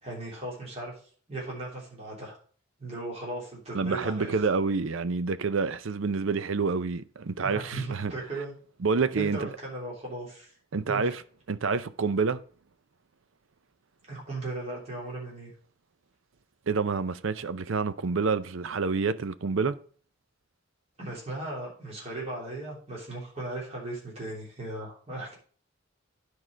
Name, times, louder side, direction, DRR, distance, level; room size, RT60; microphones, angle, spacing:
voice 1, 0.0-0.9 1.3-2.4 2.8-4.4 7.4-8.5 9.2-10.5 10.8-11.1 14.1-15.5 21.0-25.4, right 2 dB, 30° right, 3.4 m, -37 dB
voice 2, 3.7-8.1 8.8-9.5 10.7-11.2 11.5-12.4 16.7-19.8, right 4 dB, 70° right, 0.6 m, -28 dB
9.9 x 4.8 x 5.1 m
head